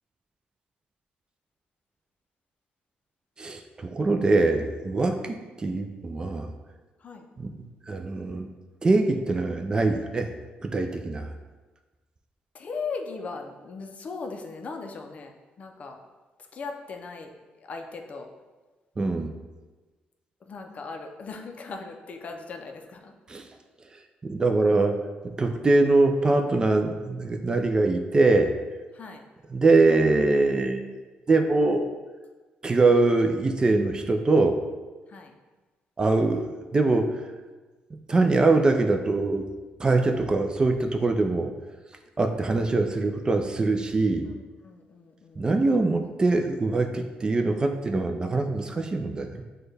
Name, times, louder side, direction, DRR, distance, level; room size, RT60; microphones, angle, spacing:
voice 1, 3.4-6.5 7.4-8.5 8.8-10.3 10.6-11.3 19.0-19.3 23.3-23.4 24.2-25.0 25.4-28.5 29.5-30.8 31.3-31.8 32.6-34.6 36.0-36.5 36.7-37.2 38.1-39.5 39.8-41.5 42.2-44.3 45.4-49.4, right 3 dB, 25° right, 6 dB, 0.3 m, -23 dB
voice 2, 12.5-16.0 16.5-17.3 17.6-18.3 20.5-23.1 28.9-29.2 32.9-33.0 35.1-35.3 44.2-45.5 45.8-46.0, left 4 dB, 45° left, 4 dB, 0.4 m, -38 dB
6.1 x 2.2 x 3.3 m, 1.3 s
cardioid pair, 110°, 3 cm